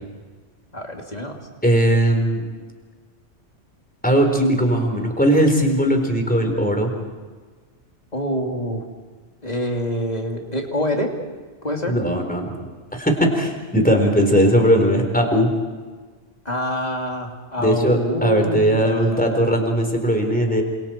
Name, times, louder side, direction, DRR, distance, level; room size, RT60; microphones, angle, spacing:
voice 1, 0.7-1.3 8.1-8.8 9.4-11.1 11.6-11.9 16.4-19.5, equal, 35° left, 1 dB, 3.0 m, -26 dB
voice 2, 1.6-2.4 4.0-6.9 11.8-12.5 12.9-15.5 17.6-20.6, equal, 5° left, 3 dB, 4.2 m, -18 dB
28.5 x 27.0 x 4.5 m, 1.4 s
omnidirectional pair, 1.3 m